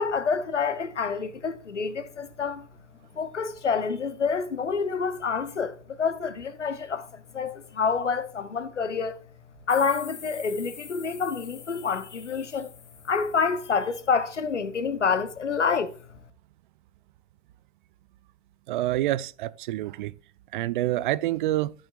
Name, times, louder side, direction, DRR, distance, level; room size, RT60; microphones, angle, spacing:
voice 1, 0.0-2.6 3.2-7.1 7.3-9.2 9.7-12.7 13.0-15.9, left 5 dB, 85° left, 0.9 m, -27 dB
sound 1, 9.7-14.1, left 7 dB, 65° left, 1.5 m, -46 dB
voice 2, 18.7-20.1 20.5-21.7, right 15 dB, 45° right, 0.4 m, -27 dB
14.0 x 5.6 x 2.4 m
figure-of-eight pair, 95°, 35 cm